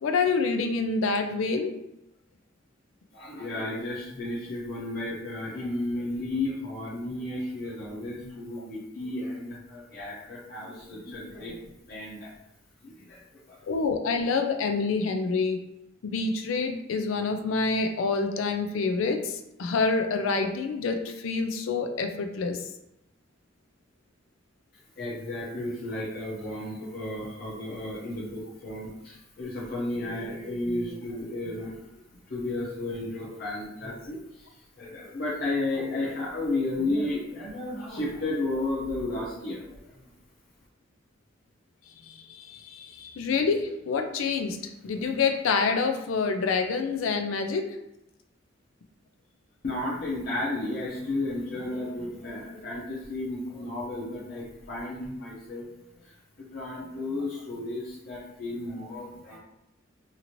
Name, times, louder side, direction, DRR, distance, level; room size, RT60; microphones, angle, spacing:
voice 1, 0.0-1.8 8.6-8.7 13.7-15.6 16.0-22.6 42.1-44.6 44.8-47.7, left 4 dB, 90° left, 5 dB, 0.4 m, -27 dB
voice 2, 3.1-11.6 11.8-12.3 12.8-13.6 25.0-40.1 49.6-55.7 55.9-59.4, left 2 dB, 50° left, -6 dB, 0.7 m, -33 dB
2.8 x 2.6 x 2.9 m, 0.87 s
head